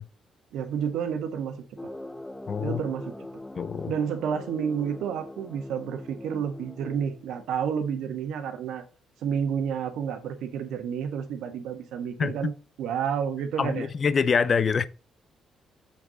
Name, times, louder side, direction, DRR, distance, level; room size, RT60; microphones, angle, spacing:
voice 1, 0.5-1.6 2.6-3.2 3.9-8.8 9.2-12.5 12.8-13.9, right 7 dB, 85° right, 1.3 m, -30 dB
sound 1, 1.8-7.5, left 1 dB, 10° left, 0.8 m, -42 dB
voice 2, 2.5-2.8 3.6-3.9 12.2-12.5 13.6-14.9, left 6 dB, 45° left, 0.5 m, -25 dB
7.2 x 6.4 x 4.0 m
cardioid pair, 90°, 0 cm